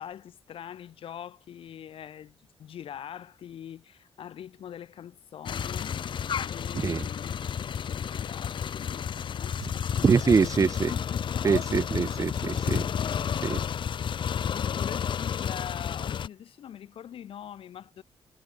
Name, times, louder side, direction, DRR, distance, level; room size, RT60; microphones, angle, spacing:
voice 1, 0.0-5.9 6.4-11.7 13.7-18.0, left 10 dB, 75° left, 6.6 m, -43 dB
sound 1, 5.5-16.3, left 8 dB, 60° left, 1.5 m, -31 dB
voice 2, 10.0-10.9 11.4-12.9 13.4-13.6, right 5 dB, 35° right, 0.6 m, -24 dB
cardioid pair, 100°, 9 cm